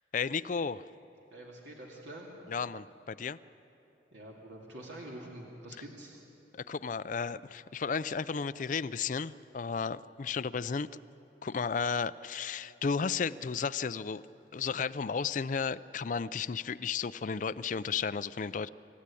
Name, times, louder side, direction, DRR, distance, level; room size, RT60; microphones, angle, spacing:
voice 1, 0.1-0.8 2.5-3.4 6.5-10.9 11.4-14.2 14.5-18.7, left 5 dB, 45° left, 13 dB, 0.4 m, -33 dB
voice 2, 1.3-2.3 4.1-6.2, right 1 dB, 85° right, -3 dB, 2.4 m, -46 dB
27.0 x 14.5 x 8.4 m, 3.0 s
head